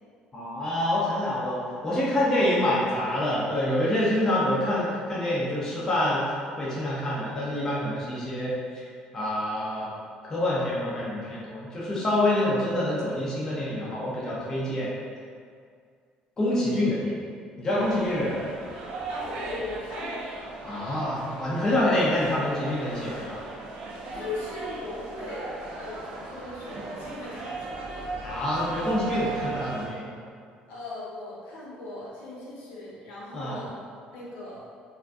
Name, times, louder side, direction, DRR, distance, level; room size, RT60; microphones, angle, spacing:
voice 1, 0.3-6.2 6.6-8.8 9.1-9.9 10.2-14.9 16.4-17.2 17.6-18.5 20.6-23.4 28.2-30.1 33.3-33.6, left 1 dB, 20° left, -8 dB, 0.4 m, -26 dB
sound 1, 17.8-29.9, right 3 dB, 65° right, 0.3 m, -37 dB
voice 2, 19.1-20.3 21.6-22.0 24.1-28.2 30.7-34.6, left 2 dB, 90° left, -7 dB, 0.8 m, -39 dB
2.4 x 2.4 x 2.2 m, 2.2 s
cardioid pair, 175°, 3 cm